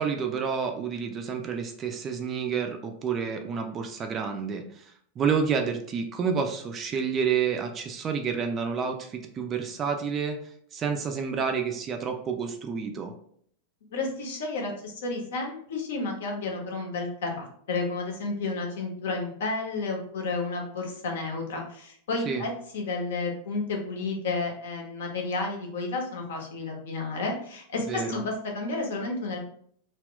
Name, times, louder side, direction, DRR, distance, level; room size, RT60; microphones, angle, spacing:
voice 1, 0.0-13.1 22.2-22.4 27.9-28.2, right 6 dB, 25° right, 4 dB, 0.4 m, -29 dB
voice 2, 13.9-29.4, left 3 dB, 60° left, 1 dB, 0.7 m, -31 dB
2.2 x 2.1 x 3.7 m, 0.63 s
figure-of-eight pair, 90°, 0 cm